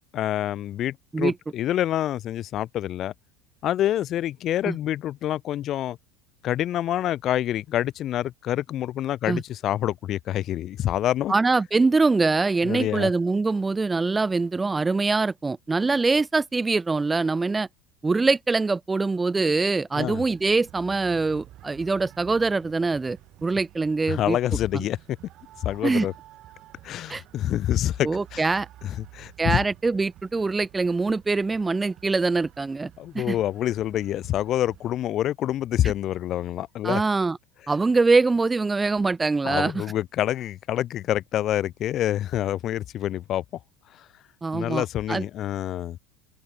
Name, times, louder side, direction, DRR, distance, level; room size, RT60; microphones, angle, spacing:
voice 1, 0.1-3.1 3.6-6.0 6.4-11.3 12.6-13.1 20.0-20.2 24.1-25.0 25.6-26.1 26.8-28.4 28.8-29.6 33.0-37.0 39.4-43.4 44.5-46.0, left 12 dB, 45° left, 1.0 m, -27 dB
voice 2, 11.3-17.7 18.0-24.4 24.7-24.8 25.8-26.1 27.1-27.2 28.0-28.7 29.4-33.4 36.8-37.4 37.7-39.8 44.4-45.3, right 3 dB, 15° right, 0.4 m, -23 dB
sound 1, 20.0-35.0, right 15 dB, 50° right, 7.8 m, -50 dB
open air
hypercardioid pair, 85°, 0 cm